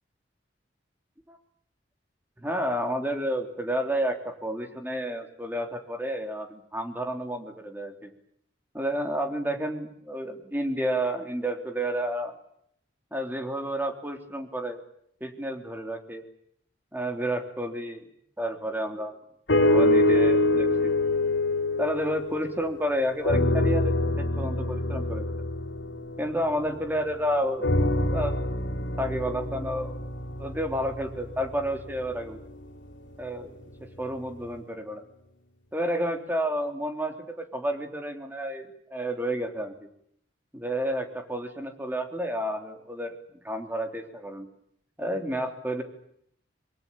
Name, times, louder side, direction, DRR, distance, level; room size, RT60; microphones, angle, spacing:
voice 1, 2.4-8.1 8.7-12.3 13.1-14.8 15.2-16.2 16.9-18.0 18.4-19.1 19.7-20.9 21.8-25.3 26.2-27.7 28.1-28.3 29.0-30.0 30.4-32.4 33.2-33.5 34.0-35.0 35.7-39.9 40.5-43.2 43.4-44.5 45.0-45.8, equal, 10° right, 5 dB, 3.4 m, -30 dB
sound 1, 19.5-22.8 23.2-27.0 27.6-31.8 32.5-32.6, left 1 dB, 80° left, 3.2 m, -25 dB
25.0 x 23.5 x 8.8 m, 0.70 s
head